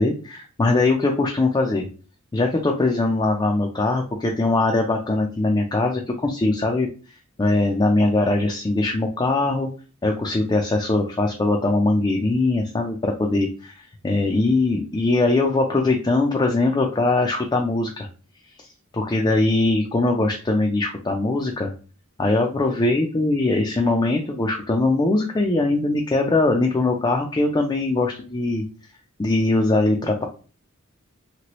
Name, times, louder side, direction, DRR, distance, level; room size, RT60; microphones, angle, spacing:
voice 1, 0.0-1.9 2.3-6.9 7.4-9.7 10.0-18.1 18.6-18.7 18.9-21.7 22.2-28.6 29.2-30.3, left 2 dB, 20° left, 1 dB, 0.3 m, -21 dB
3.0 x 2.9 x 2.9 m, 0.37 s
head